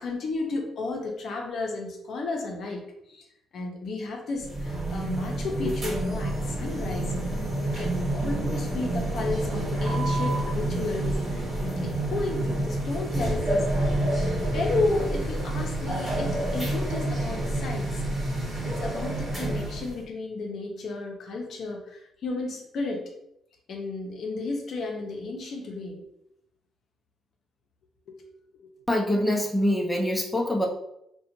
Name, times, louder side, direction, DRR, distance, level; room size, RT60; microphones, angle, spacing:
voice 1, 0.0-2.8 3.1-3.2 3.5-7.1 7.6-14.0 14.5-18.4 18.6-23.1 23.7-26.0 28.1-28.2 28.5-28.9, left 3 dB, 65° left, 2 dB, 0.5 m, -33 dB
sound 1, 4.4-20.0, right 1 dB, 25° right, 1.2 m, -28 dB
voice 2, 28.9-30.7, left 1 dB, 5° left, -2 dB, 0.5 m, -24 dB
2.5 x 2.1 x 2.9 m, 0.78 s
cardioid pair, 90°, 0 cm